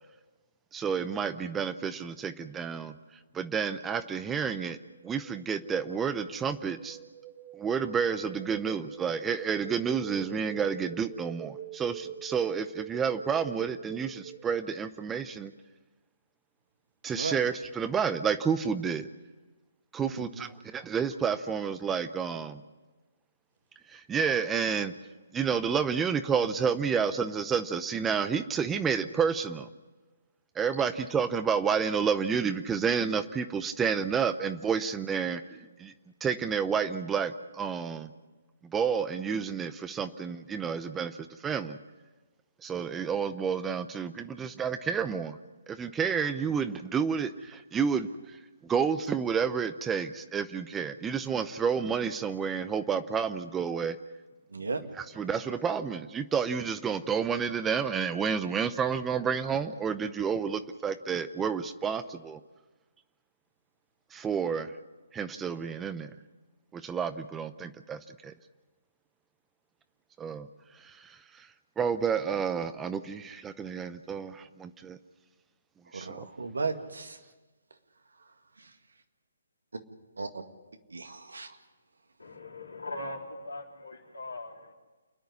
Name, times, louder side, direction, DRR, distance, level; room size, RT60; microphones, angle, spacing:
voice 1, 0.7-2.9 3.3-4.8 5.0-7.0 7.5-15.5 17.0-19.1 19.9-22.6 23.9-24.9 25.3-29.7 30.6-35.9 36.2-38.1 38.7-41.2 41.4-41.8 42.6-45.4 45.7-48.1 48.6-54.0 55.2-62.4 64.1-64.7 65.1-66.1 66.7-68.3 70.2-70.5 70.8-71.1 71.4-71.5 71.8-75.0 75.9-76.2, right 6 dB, 10° right, 11 dB, 0.7 m, -30 dB
sound 1, 4.8-14.7, right 10 dB, 30° right, 1.3 m, -45 dB
voice 2, 20.0-20.5 54.5-54.8 75.9-77.2 78.6-78.7 80.2-80.3 80.9-81.6, right 4 dB, 75° right, 6 dB, 2.1 m, -35 dB
voice 3, 82.2-84.7, left 2 dB, 85° left, -2 dB, 3.8 m, -40 dB
29.0 x 10.5 x 9.7 m, 1.2 s
figure-of-eight pair, 140°, 0 cm